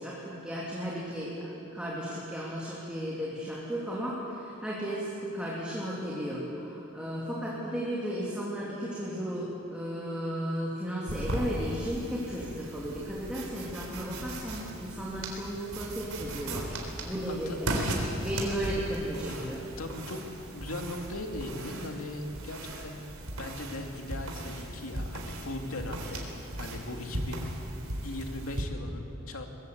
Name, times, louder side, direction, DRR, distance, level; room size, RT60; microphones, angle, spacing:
voice 1, 0.0-17.7 18.2-19.6, equal, 5° right, -6 dB, 3.1 m, -35 dB
sound 1, 11.1-28.6, right 1 dB, 85° right, 3.8 m, -37 dB
voice 2, 17.3-17.6 17.9-18.1 19.3-19.4 19.8-20.2 20.5-23.0 23.3-26.3 26.6-27.5 28.0-29.5, left 1 dB, 80° left, 3 dB, 2.5 m, -39 dB
23.0 x 21.0 x 8.2 m, 3.0 s
head